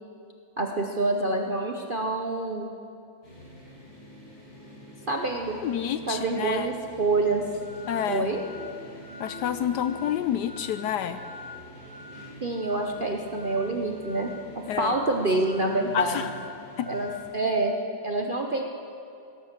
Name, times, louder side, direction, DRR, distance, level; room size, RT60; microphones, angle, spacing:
voice 1, 0.6-2.7 5.1-5.6 6.1-7.4 8.1-8.4 12.4-14.3 14.8-16.2 16.9-17.8 18.0-18.6, right 2 dB, 45° right, 2 dB, 0.7 m, -27 dB
sound 1, 3.2-17.2, left 1 dB, 50° left, 6.2 m, -44 dB
voice 2, 5.6-6.7 7.9-8.3 9.2-11.2 14.7-14.9 15.9-16.3 16.8-16.9, left 9 dB, 70° left, 11 dB, 1.1 m, -28 dB
17.5 x 11.0 x 7.4 m, 2.5 s
omnidirectional pair, 2.1 m